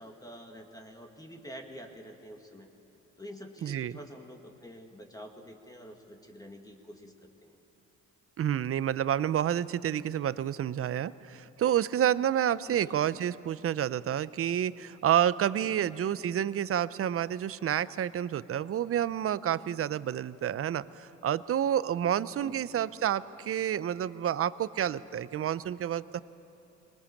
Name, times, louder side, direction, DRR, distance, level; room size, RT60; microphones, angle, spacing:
voice 1, 0.0-2.7 3.2-7.6 12.7-13.2 15.6-15.9 22.3-22.6, equal, 10° left, 2 dB, 1.9 m, -48 dB
voice 2, 3.6-3.9 8.4-26.2, right 10 dB, 50° right, 17 dB, 0.6 m, -29 dB
22.5 x 20.0 x 7.2 m, 2.9 s
cardioid pair, 90°, 30 cm